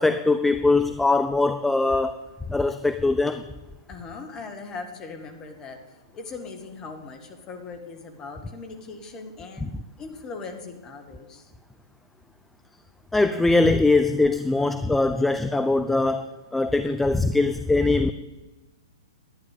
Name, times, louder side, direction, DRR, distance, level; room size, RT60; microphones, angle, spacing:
voice 1, 0.0-2.2 2.5-3.4 13.1-18.1, left 3 dB, 5° left, 9 dB, 0.5 m, -21 dB
voice 2, 3.9-9.7 10.0-11.5, left 4 dB, 20° left, 4 dB, 2.0 m, -39 dB
12.0 x 9.5 x 8.0 m, 1.1 s
figure-of-eight pair, 115°, 3 cm